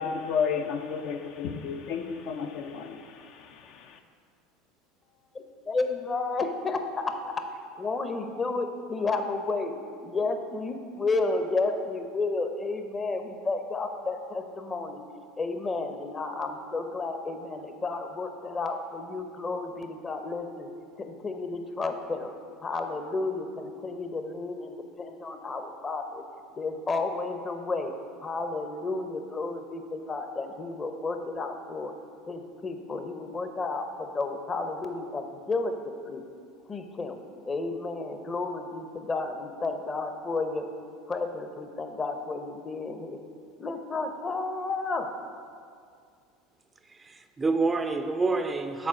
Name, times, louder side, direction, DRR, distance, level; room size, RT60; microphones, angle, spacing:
voice 1, 0.0-4.0, left 6 dB, 60° left, 0.5 m, -32 dB
voice 2, 5.3-7.4 7.8-9.7 10.0-15.0 15.4-20.7 21.0-22.3 22.6-26.2 26.6-27.9 28.2-31.9 32.3-36.2 36.7-37.2 37.4-40.7 41.1-43.2 43.6-45.1, left 3 dB, 25° left, 0.7 m, -32 dB
voice 3, 46.9-48.9, right 3 dB, 20° right, 0.4 m, -27 dB
7.3 x 4.2 x 5.8 m
supercardioid pair, 100°, 0 cm